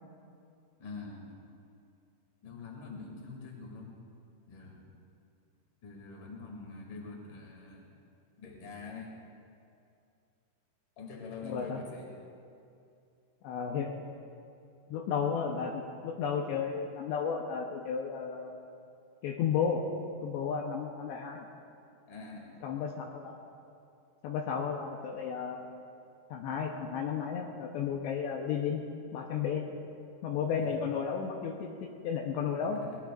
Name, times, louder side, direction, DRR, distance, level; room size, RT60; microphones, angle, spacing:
voice 1, 0.8-1.3 2.4-4.0 4.4-4.9 5.8-7.9 8.4-9.1 11.0-12.1 22.1-22.6 30.7-30.8 32.6-33.0, left 4 dB, 35° left, -1 dB, 2.4 m, -45 dB
voice 2, 11.4-11.8 13.4-13.9 14.9-18.7 19.2-19.8 20.2-21.5 22.6-23.4 24.2-25.7 26.3-28.8 29.1-29.6 30.2-32.8, left 7 dB, 75° left, 0 dB, 2.8 m, -33 dB
22.0 x 20.0 x 2.5 m, 2.5 s
omnidirectional pair, 5.5 m